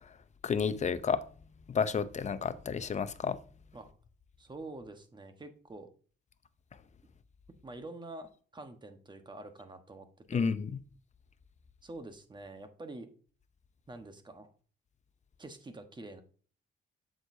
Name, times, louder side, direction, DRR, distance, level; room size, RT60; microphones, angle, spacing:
voice 1, 0.4-1.2 1.7-3.4 10.3-10.7, left 6 dB, 35° left, 0.6 m, -31 dB
voice 2, 4.4-5.9 7.6-10.5 11.8-13.1 13.9-14.5 15.4-16.2, right 2 dB, 25° right, 1.2 m, -46 dB
7.8 x 6.4 x 2.7 m
cardioid pair, 90°, 20 cm